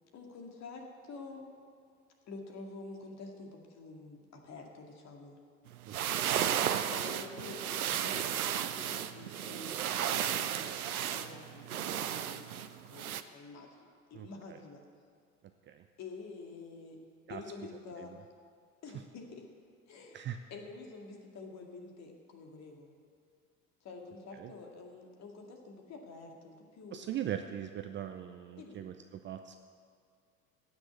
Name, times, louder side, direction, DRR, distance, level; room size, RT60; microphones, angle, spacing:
voice 1, 0.1-1.6 2.3-5.4 6.4-14.8 16.0-17.0 17.3-18.1 18.8-19.5 19.9-20.2 20.5-22.9 23.8-27.1 28.6-28.8, left 3 dB, 35° left, 2 dB, 2.2 m, -48 dB
sound 1, 5.7-13.2, right 10 dB, 75° right, 0.7 m, -34 dB
voice 2, 14.1-14.6 15.7-15.8 17.3-17.4 20.1-20.4 24.4-24.5 26.9-28.9 29.2-29.5, right 10 dB, 25° right, 7 dB, 0.6 m, -40 dB
16.5 x 6.3 x 8.2 m, 2.3 s
figure-of-eight pair, 70°, 44 cm